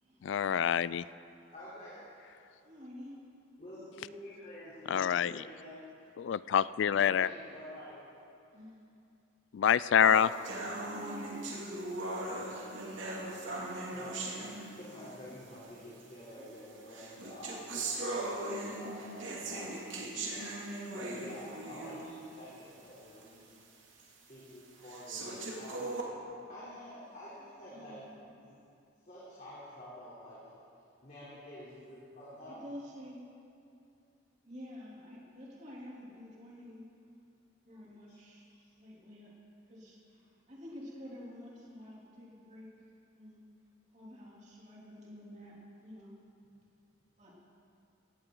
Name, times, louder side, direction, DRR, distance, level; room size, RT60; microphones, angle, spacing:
voice 1, 0.2-1.0 4.9-5.4 6.2-7.3 9.5-10.3, left 8 dB, 65° left, 18 dB, 0.3 m, -26 dB
voice 2, 1.5-2.0 3.6-5.8 7.0-8.0 12.6-12.9 13.9-14.3 14.7-19.9 20.9-23.6 24.3-25.9 26.5-28.1 28.4-28.5 29.0-30.4 31.0-32.6 38.6-38.7, equal, 40° left, -10 dB, 3.6 m, -49 dB
voice 3, 2.6-3.2 8.5-8.8 10.8-11.5 15.2-15.4 20.8-21.2 25.1-25.5 27.7-28.1 32.5-33.2 34.4-36.8 37.6-38.5 38.8-39.3 39.7-42.7 43.1-43.4 43.9-46.2 47.2-47.3, equal, 35° right, -5 dB, 3.1 m, -49 dB
sound 1, 10.0-15.1 16.0-16.1 16.9-22.2 22.6-22.7 23.2-23.3 24.0-24.1 24.8-26.0, right 2 dB, 70° right, 2.5 m, -39 dB
17.0 x 17.0 x 3.9 m, 2.6 s
head